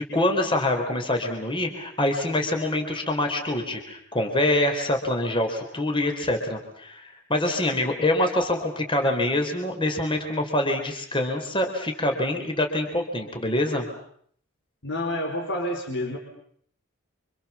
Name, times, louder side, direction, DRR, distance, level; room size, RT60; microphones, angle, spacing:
voice 1, 0.1-13.9, left 1 dB, 25° left, 4 dB, 4.4 m, -25 dB
voice 2, 14.8-16.2, left 1 dB, 60° left, 2 dB, 4.7 m, -28 dB
29.5 x 26.0 x 7.3 m, 0.65 s
head